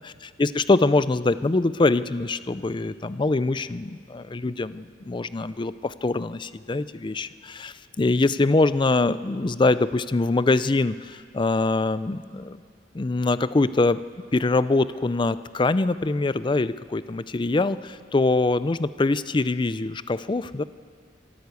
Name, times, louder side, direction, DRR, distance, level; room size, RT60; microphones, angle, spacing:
voice 1, 0.4-12.6 12.9-14.0 14.3-20.6, left 3 dB, 25° left, 15 dB, 0.4 m, -23 dB
24.5 x 13.0 x 8.2 m, 2.1 s
head